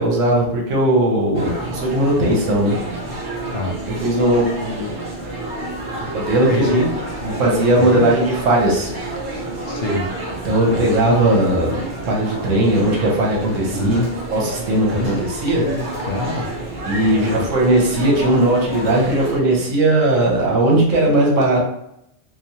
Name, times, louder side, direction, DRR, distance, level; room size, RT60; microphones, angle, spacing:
voice 1, 0.0-2.8 4.0-4.9 6.1-6.8 7.2-8.9 10.4-11.8 12.1-14.0 14.3-15.6 16.8-21.6, right 1 dB, 80° right, -2 dB, 1.2 m, -18 dB
sound 1, 1.3-19.4, right 2 dB, 50° right, 0.6 m, -29 dB
voice 2, 6.5-6.9 7.8-8.1 9.6-10.1 13.7-14.1 14.9-15.2 15.6-16.5 17.1-17.4, left 2 dB, 60° left, 0 dB, 0.7 m, -24 dB
3.1 x 2.0 x 2.7 m, 0.79 s
omnidirectional pair, 1.3 m